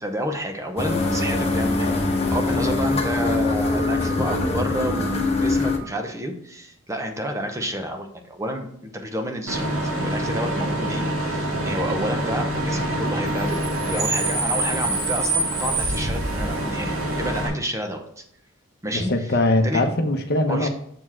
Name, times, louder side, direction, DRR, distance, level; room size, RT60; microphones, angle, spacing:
voice 1, 0.0-2.0 2.2-13.6 13.9-18.2 18.8-19.1 19.6-19.8 20.5-20.7, equal, 15° right, 5 dB, 0.9 m, -30 dB
sound 1, 0.8-5.8, left 2 dB, 30° left, 1.1 m, -23 dB
Bus / Idling / Screech, 9.5-17.5, right 1 dB, 75° right, 2.7 m, -25 dB
voice 2, 18.9-20.7, left 2 dB, 55° left, 6 dB, 0.9 m, -21 dB
7.4 x 4.4 x 4.5 m, 0.69 s
head